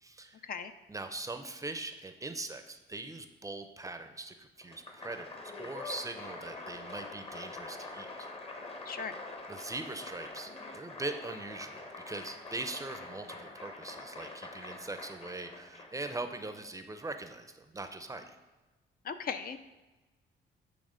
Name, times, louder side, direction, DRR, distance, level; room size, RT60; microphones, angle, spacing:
voice 1, 0.0-0.4 0.9-8.3 9.5-18.2, right 2 dB, 15° right, 7 dB, 0.5 m, -41 dB
Applause, 4.6-16.5, left 2 dB, 30° left, 0.9 m, -45 dB
voice 2, 19.0-19.6, left 6 dB, 50° left, 9 dB, 0.4 m, -37 dB
8.7 x 3.4 x 5.0 m, 1.1 s
cardioid pair, 90°, 20 cm